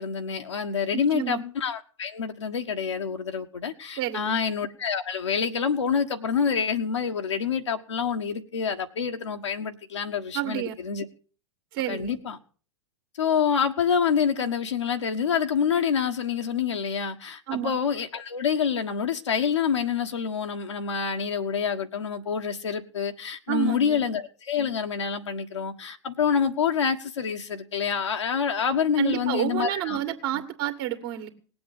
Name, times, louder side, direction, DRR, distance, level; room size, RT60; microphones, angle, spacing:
voice 1, 0.0-11.0 11.9-12.4 13.2-30.0, left 7 dB, 70° left, 1.5 m, -27 dB
voice 2, 0.9-1.4 4.0-4.4 10.3-10.7 11.7-12.2 17.5-17.8 23.5-24.0 29.0-31.3, right 13 dB, 50° right, 2.0 m, -30 dB
19.0 x 7.8 x 7.6 m
figure-of-eight pair, 95°, 15 cm